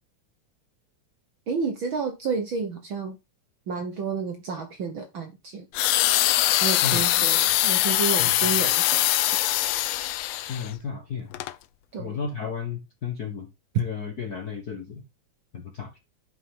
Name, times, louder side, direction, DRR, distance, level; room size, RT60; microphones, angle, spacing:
voice 1, 1.5-3.2 3.7-5.6 6.6-9.4 11.9-12.2, right 5 dB, 55° right, 1.5 m, -31 dB
sound 1, 5.7-10.7 11.3-11.5, left 15 dB, 80° left, 1.5 m, -22 dB
voice 2, 6.8-7.3 8.2-8.3 10.4-11.3 12.0-13.5 13.7-15.0 15.5-16.0, left 6 dB, 45° left, 1.3 m, -33 dB
10.0 x 5.7 x 3.8 m
omnidirectional pair, 3.4 m